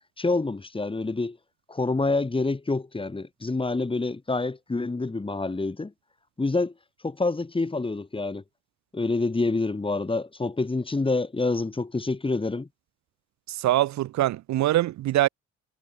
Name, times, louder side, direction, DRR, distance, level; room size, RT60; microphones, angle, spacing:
voice 1, 0.2-1.4 1.7-5.9 6.4-6.7 7.0-8.4 8.9-12.7, left 3 dB, 15° left, 1.8 m, -27 dB
voice 2, 13.5-15.3, right 14 dB, 65° right, 0.6 m, -23 dB
cardioid pair, 90°, 30 cm